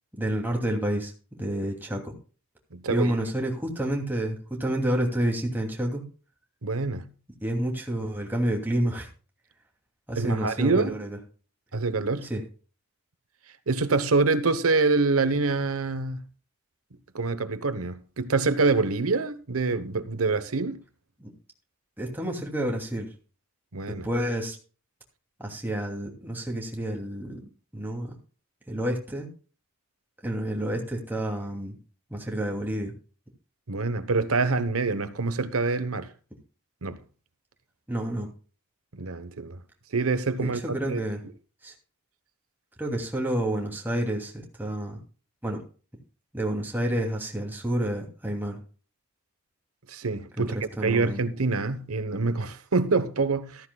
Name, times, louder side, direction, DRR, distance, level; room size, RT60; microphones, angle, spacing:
voice 1, 0.1-2.1 2.9-6.0 7.4-9.1 10.1-11.2 12.2-12.4 21.2-21.3 22.0-23.1 23.9-24.6 25.4-28.1 28.7-29.3 30.2-31.8 32.1-32.9 37.9-38.3 40.4-41.2 41.6-41.7 42.8-45.0 45.4-45.6 46.3-48.6 50.4-51.2, right 1 dB, 10° right, 2.7 m, -29 dB
voice 2, 2.7-3.1 3.4-3.5 6.6-7.1 10.2-10.9 11.7-12.3 13.7-16.2 17.1-20.8 23.7-24.1 33.7-36.1 36.8-37.0 38.9-39.6 39.9-40.6 40.9-41.0 49.9-53.7, right 3 dB, 90° right, 1.1 m, -26 dB
14.0 x 14.0 x 2.3 m
head